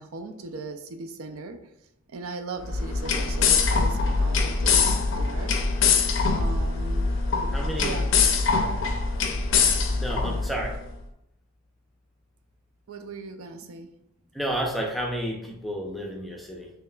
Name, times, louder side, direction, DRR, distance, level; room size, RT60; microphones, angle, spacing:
voice 1, 0.0-1.6 2.1-5.6 6.3-7.5 7.8-8.1 12.9-13.9, right 3 dB, 70° right, 7 dB, 0.4 m, -38 dB
sound 1, 2.6-10.8, left 4 dB, 55° left, 0.5 m, -23 dB
voice 2, 7.5-8.0 9.9-10.8 14.3-16.7, equal, ahead, -1 dB, 0.5 m, -31 dB
5.5 x 2.9 x 2.3 m, 0.78 s
head